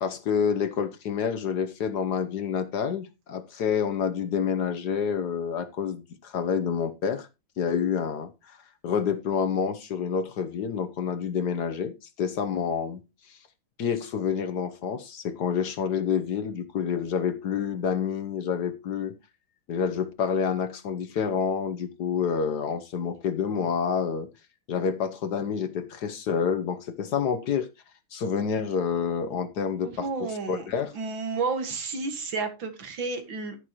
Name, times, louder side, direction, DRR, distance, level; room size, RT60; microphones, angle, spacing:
voice 1, 0.0-7.3 7.6-8.6 8.8-13.0 13.3-13.4 13.8-19.1 19.7-24.3 24.7-27.7 28.1-30.9, left 7 dB, 60° left, 1.2 m, -28 dB
voice 2, 29.8-30.7 30.9-33.6, right 4 dB, 65° right, 2.4 m, -31 dB
11.5 x 10.5 x 3.0 m
omnidirectional pair, 2.4 m